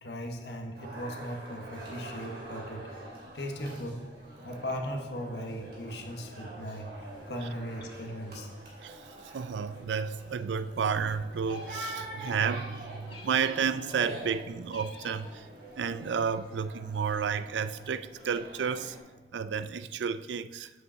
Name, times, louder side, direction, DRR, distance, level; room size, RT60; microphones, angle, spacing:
voice 1, 0.0-2.9 3.3-4.0 4.4-8.5, equal, 75° left, 1.2 m, -38 dB
sound 1, 0.8-19.0, right 1 dB, 55° right, 2.9 m, -45 dB
voice 2, 9.3-15.5 15.8-19.0 19.3-20.7, right 6 dB, 90° right, 0.4 m, -31 dB
sound 2, 11.4-12.1 13.1-13.7 14.7-15.3, left 4 dB, 30° left, 1.2 m, -51 dB
8.0 x 5.3 x 6.8 m
head